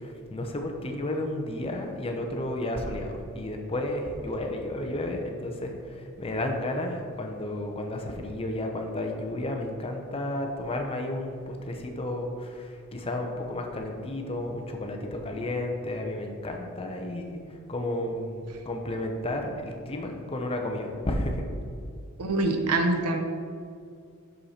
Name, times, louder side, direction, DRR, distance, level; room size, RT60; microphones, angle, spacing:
voice 1, 0.0-17.4 17.7-21.4, left 1 dB, 25° left, 3 dB, 0.7 m, -32 dB
voice 2, 22.2-23.2, right 2 dB, 80° right, 5 dB, 0.7 m, -25 dB
6.4 x 5.4 x 4.3 m, 2.3 s
head